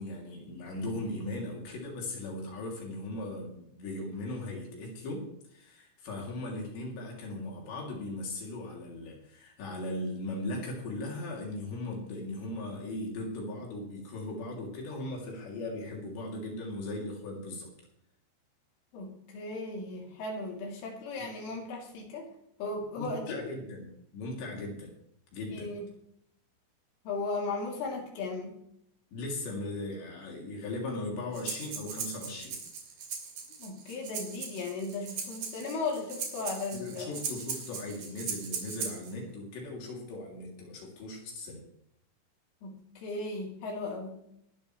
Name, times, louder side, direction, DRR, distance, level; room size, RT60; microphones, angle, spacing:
voice 1, 0.0-17.7 21.2-21.3 22.9-23.9 24.1-24.9 25.3-25.7 29.1-32.6 36.7-41.6, left 2 dB, 65° left, -1 dB, 5.1 m, -38 dB
voice 2, 18.9-22.3 22.6-23.5 25.5-25.9 27.1-28.5 33.6-37.1 42.6-44.2, left 3 dB, 85° left, -1 dB, 5.7 m, -36 dB
Breathing, 31.3-39.1, right 6 dB, 55° right, 3.9 m, -39 dB
21.5 x 12.5 x 3.3 m, 0.75 s
omnidirectional pair, 5.5 m